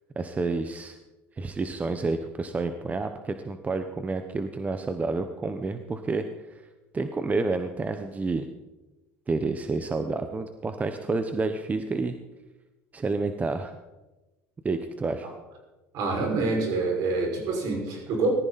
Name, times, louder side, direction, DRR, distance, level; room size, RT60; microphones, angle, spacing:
voice 1, 0.2-1.0 1.4-6.2 6.9-8.5 9.3-12.1 12.9-13.8 14.6-15.3, right 3 dB, 20° right, 8 dB, 1.1 m, -29 dB
voice 2, 15.9-18.3, right 3 dB, 65° right, 0 dB, 5.8 m, -26 dB
19.0 x 14.0 x 4.2 m, 1.1 s
supercardioid pair, 100°, 7 cm